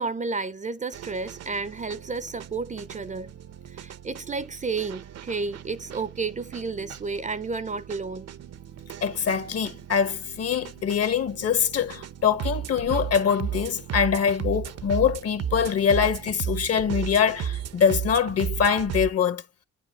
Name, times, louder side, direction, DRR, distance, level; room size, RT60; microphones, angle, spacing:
voice 1, 0.0-3.3 3.7-8.3, right 4 dB, 25° right, 0.6 m, -31 dB
sound 1, 0.9-19.1, right 9 dB, 55° right, 0.7 m, -35 dB
voice 2, 9.0-19.4, left 7 dB, 55° left, 1.3 m, -24 dB
9.0 x 5.0 x 2.4 m
cardioid pair, 90°, 30 cm